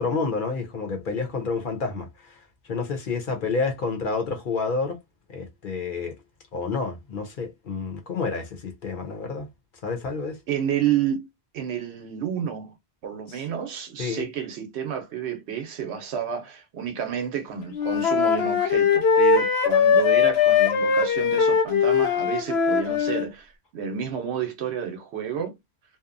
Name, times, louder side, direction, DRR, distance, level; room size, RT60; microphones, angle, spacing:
voice 1, 0.0-2.4 2.7-5.0 5.3-6.2 6.5-9.5 9.8-10.4 13.3-13.4 14.0-14.2, left 4 dB, 55° left, 0.8 m, -29 dB
voice 2, 10.5-11.3 11.5-12.7 13.0-25.5, right 8 dB, 85° right, 1.0 m, -30 dB
Wind instrument woodwind instrument, 17.7-23.3, left 6 dB, 75° left, 0.9 m, -20 dB
2.8 x 2.1 x 2.4 m
omnidirectional pair, 1.1 m